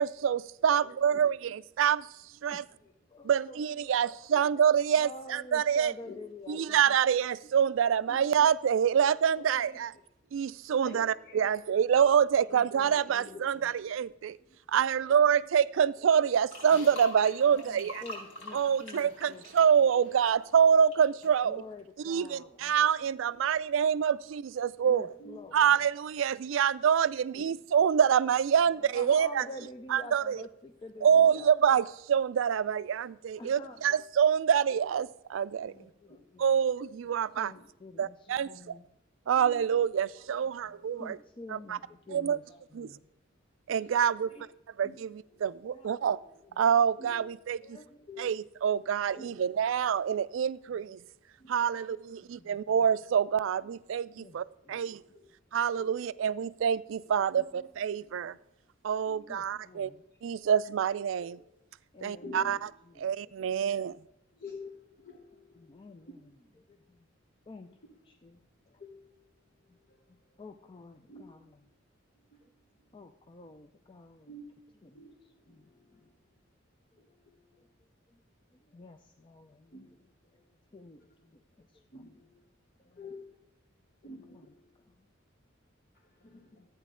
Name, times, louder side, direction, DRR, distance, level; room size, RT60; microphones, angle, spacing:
voice 1, 0.0-2.1 2.4-2.6 3.2-5.9 6.5-9.9 10.3-14.4 14.7-18.0 18.5-21.6 22.0-25.1 25.5-29.5 29.9-30.4 31.0-35.7 36.4-37.5 38.0-38.8 39.3-41.2 41.5-41.8 42.1-42.4 42.7-42.9 43.7-44.3 44.8-46.2 46.6-47.8 48.2-51.0 51.5-55.0 55.5-58.3 58.8-59.9 60.2-61.4 62.0-62.7 63.0-63.9, right 8 dB, 75° right, 0.3 m, -26 dB
voice 2, 3.1-4.1 4.3-4.5 4.9-7.0 9.3-9.7 12.5-13.7 17.5-19.4 21.4-22.7 24.1-24.2 24.8-25.8 28.6-31.8 33.4-33.8 35.7-36.4 37.4-38.8 40.3-40.4 41.0-43.1 44.2-44.5 45.7-46.2 46.4-46.6 47.6-48.1 49.1-49.2 51.6-51.8 52.2-52.6 54.2-54.4 54.6-54.9 57.3-57.6 58.1-58.4 59.3-60.0 61.9-63.9 65.5-67.0 67.5-67.8 68.0-68.8 69.7-69.8 70.1-71.7 72.4-72.5 72.9-74.4 74.8-76.0 78.1-78.2 78.7-80.4 80.7-82.2 82.8-83.1 84.3-84.5 84.9-85.0 86.6-86.7, left 2 dB, 25° left, 0.4 m, -49 dB
voice 3, 10.8-11.4 13.2-13.5 14.5-15.1 19.8-19.9 25.2-25.4 26.3-26.4 29.3-29.4 31.2-31.4 35.7-36.2 37.5-37.6 39.4-39.6 42.1-42.2 43.8-44.0 44.8-45.0 46.0-46.1 47.0-47.2 48.1-48.2 48.8-48.9 49.1-49.3 51.4-51.5 54.7-54.9 55.7-55.9 57.1-57.7 59.0-59.3 61.2-61.3 62.1-62.6 64.3-64.7 65.0-66.3 68.8-68.9 71.1-71.3 72.3-72.5 74.3-74.5 74.9-75.1 75.5-75.6 75.9-76.0 77.3-77.4 79.7-79.9 81.9-82.4 83.0-83.2 84.0-84.5 86.2-86.6, left 2 dB, 50° left, 1.1 m, -47 dB
sound 1, 16.5-21.0 21.2-21.4, left 1 dB, 70° left, 4.7 m, -45 dB
13.0 x 9.0 x 3.7 m
head